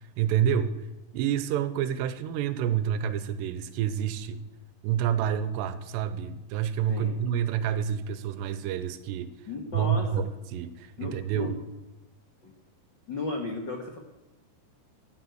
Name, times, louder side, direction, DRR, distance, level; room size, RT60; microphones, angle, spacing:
voice 1, 0.2-0.9 1.1-4.4 4.8-9.3 9.7-11.5, right 9 dB, 90° right, 13 dB, 3.0 m, -28 dB
voice 2, 6.9-7.2 9.5-10.2 11.0-11.5 12.4-12.5 13.1-14.0, left 3 dB, 80° left, 2 dB, 1.0 m, -34 dB
14.0 x 10.0 x 7.9 m, 1.1 s
omnidirectional pair, 4.8 m